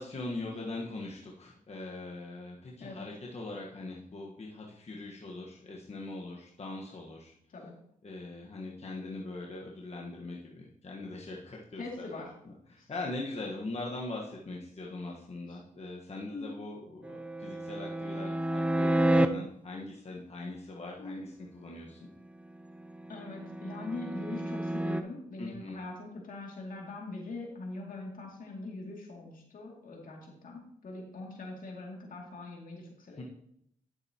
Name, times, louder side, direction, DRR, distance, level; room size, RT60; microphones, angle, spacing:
voice 1, 0.0-7.3 8.0-22.0 25.4-25.8 33.1-33.2, left 2 dB, 45° left, -2 dB, 1.4 m, -41 dB
voice 2, 11.8-12.3 12.8-12.9 16.3-16.5 21.0-21.3 23.1-33.2, left 2 dB, 70° left, -1 dB, 2.5 m, -42 dB
sound 1, 17.0-19.3 22.6-25.0, right 1 dB, 10° right, 0.6 m, -30 dB
10.5 x 7.9 x 2.9 m, 0.71 s
cardioid pair, 60°, 15 cm